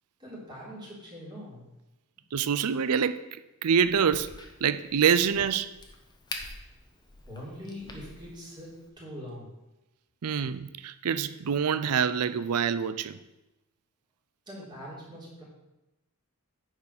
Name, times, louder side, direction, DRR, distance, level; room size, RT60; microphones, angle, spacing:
voice 1, 0.2-1.7 7.2-9.5 14.5-15.4, equal, 20° right, -7 dB, 3.6 m, -43 dB
voice 2, 2.3-3.2 3.6-4.3 4.6-5.7 10.2-13.2, right 7 dB, 85° right, 12 dB, 0.5 m, -25 dB
Crack, 3.8-8.9, left 3 dB, 20° left, 1.0 m, -46 dB
9.5 x 4.9 x 6.7 m, 0.99 s
head